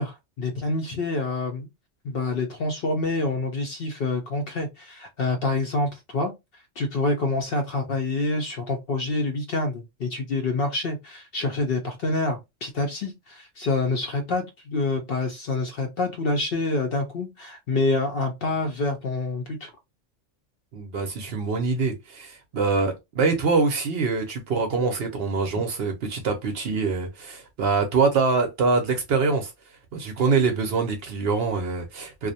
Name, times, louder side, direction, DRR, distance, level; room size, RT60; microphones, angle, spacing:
voice 1, 0.0-1.7 2.0-6.3 6.8-19.7, left 2 dB, 60° left, 0.7 m, -27 dB
voice 2, 20.7-29.5 29.9-32.3, right 4 dB, 60° right, 0.7 m, -24 dB
2.4 x 2.0 x 2.6 m
omnidirectional pair, 1.3 m